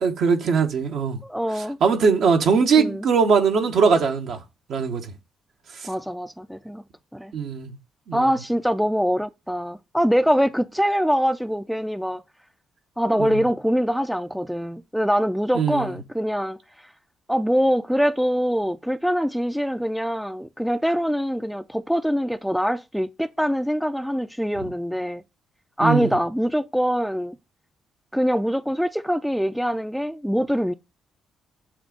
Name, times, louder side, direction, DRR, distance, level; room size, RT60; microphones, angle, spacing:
voice 1, 0.0-1.2 1.8-4.4 4.7-5.0 7.3-7.7 8.1-8.3 13.2-13.4 15.5-16.0 25.8-26.1, right 5 dB, 65° right, 1.0 m, -20 dB
voice 2, 1.2-1.8 2.7-3.0 5.8-6.8 7.1-7.3 8.1-12.2 13.0-16.6 17.3-25.2 25.8-27.4 28.1-30.7, equal, ahead, 0.4 m, -23 dB
7.3 x 2.5 x 5.2 m
hypercardioid pair, 45°, 0 cm